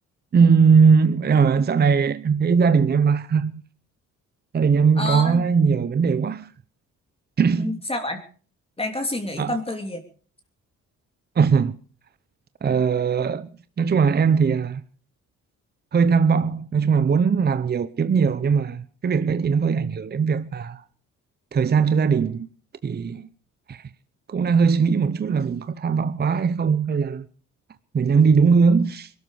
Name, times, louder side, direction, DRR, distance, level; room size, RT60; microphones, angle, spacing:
voice 1, 0.3-3.6 4.5-6.5 7.4-7.8 9.4-9.6 11.4-11.8 12.6-13.5 13.8-14.8 15.9-20.8 21.5-22.5 22.8-23.3 23.7-23.9 24.3-27.3 27.9-29.1, right 5 dB, 35° right, 0.8 m, -20 dB
voice 2, 5.0-5.4 7.6-8.2 8.8-10.0, left 1 dB, 20° left, 3.0 m, -28 dB
21.5 x 12.5 x 4.9 m
cardioid pair, 90°, 30 cm